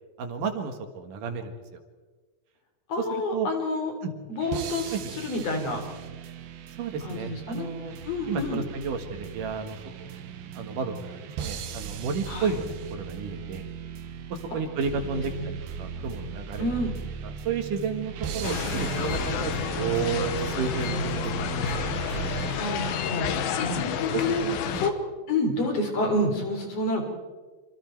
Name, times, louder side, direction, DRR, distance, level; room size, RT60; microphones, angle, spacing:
voice 1, 0.2-1.8 3.0-3.5 4.0-4.1 4.9-5.1 6.8-7.9 8.3-10.2 10.5-13.7 14.3-16.7 17.2-21.7 23.7-23.8 24.1-24.8, right 5 dB, 65° right, 6 dB, 3.1 m, -32 dB
voice 2, 2.9-3.9 4.3-5.8 7.0-7.7 8.0-8.6 12.3-12.6 14.5-14.6 14.9-15.1 15.4-15.5 16.6-17.0 22.5-23.3 23.6-24.4 24.7-24.9 25.3-27.1, left 2 dB, 45° left, 3 dB, 4.5 m, -28 dB
sound 1, 4.3-22.5, right 7 dB, 85° right, 3.2 m, -37 dB
sound 2, 18.4-24.9, left 8 dB, 85° left, 3.0 m, -30 dB
27.0 x 26.0 x 4.6 m, 1.4 s
omnidirectional pair, 4.1 m